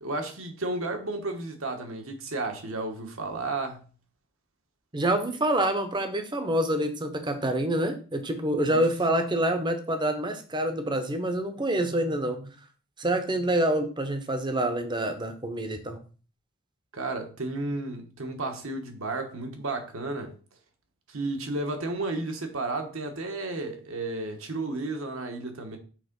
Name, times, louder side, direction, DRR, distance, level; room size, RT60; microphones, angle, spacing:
voice 1, 0.0-3.8 8.6-8.8 16.9-20.3 21.1-25.8, right 2 dB, 65° right, 1.2 m, -33 dB
voice 2, 4.9-12.5 13.0-16.0, right 1 dB, 20° right, 0.8 m, -27 dB
6.3 x 3.6 x 5.3 m
head